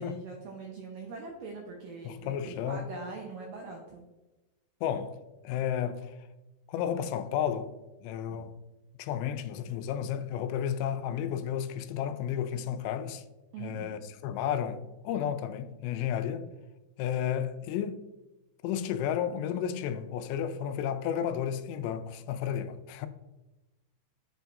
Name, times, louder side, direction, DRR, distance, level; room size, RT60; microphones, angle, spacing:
voice 1, 0.0-4.0 8.3-8.4 13.5-14.0, right 4 dB, 80° right, 1.9 m, -42 dB
voice 2, 2.1-2.9 4.8-5.2 5.4-6.1 6.7-7.7 8.0-8.5 9.0-13.2 13.6-16.5 17.0-18.0 18.6-23.1, left 9 dB, 85° left, 2.7 m, -32 dB
8.1 x 4.5 x 2.6 m
omnidirectional pair, 4.9 m